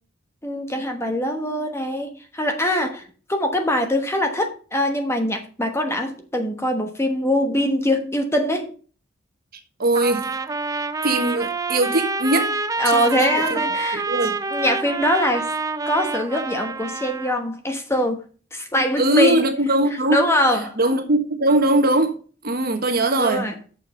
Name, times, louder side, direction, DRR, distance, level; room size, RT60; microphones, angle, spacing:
voice 1, 0.4-8.7 12.8-14.1 14.5-15.5 15.8-18.2 18.5-19.4 20.1-20.8 23.2-23.6, left 1 dB, 15° left, 1.2 m, -23 dB
voice 2, 9.8-10.3 11.0-12.5 12.8-13.6 13.9-14.4 19.0-20.2 20.8-22.1 22.4-23.5, right 2 dB, 50° right, 1.4 m, -20 dB
Trumpet, 10.0-17.4, right 3 dB, 20° right, 0.5 m, -27 dB
6.8 x 5.7 x 5.6 m
head